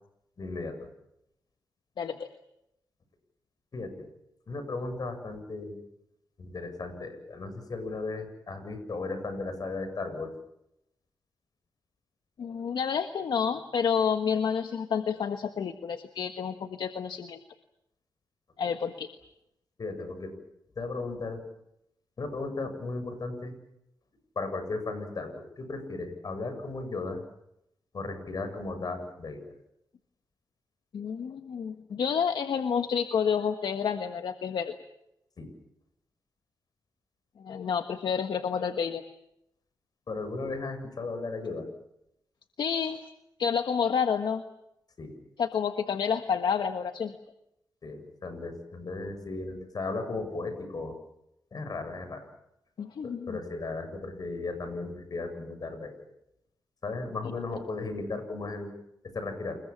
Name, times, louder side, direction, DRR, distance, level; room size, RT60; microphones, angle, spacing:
voice 1, 0.4-0.8 3.7-4.1 4.5-5.8 6.4-10.3 19.8-20.3 20.8-21.4 22.2-23.5 24.4-27.2 27.9-29.5 35.4-35.5 40.1-41.7 45.0-45.1 47.8-51.0 51.5-52.3 53.0-56.1 56.8-58.7 59.0-59.6, left 3 dB, 55° left, 8 dB, 7.8 m, -36 dB
voice 2, 2.0-2.3 12.4-17.4 18.6-19.1 30.9-34.7 37.4-39.0 42.6-43.0 43.4-44.4 45.4-47.1 52.8-53.4, left 7 dB, 75° left, 7 dB, 1.4 m, -29 dB
29.0 x 21.5 x 7.4 m, 0.80 s
cardioid pair, 70°, 8 cm